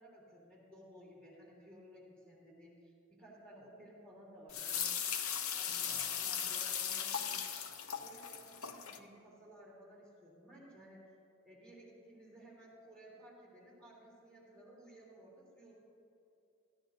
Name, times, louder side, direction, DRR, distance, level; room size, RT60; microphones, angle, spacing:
voice 1, 0.0-5.1 5.5-7.4 8.0-11.1 11.4-15.8, equal, 5° left, -6 dB, 3.2 m, -57 dB
sound 1, 4.5-9.0, left 8 dB, 70° left, 0.8 m, -38 dB
17.5 x 15.0 x 2.7 m, 2.7 s
head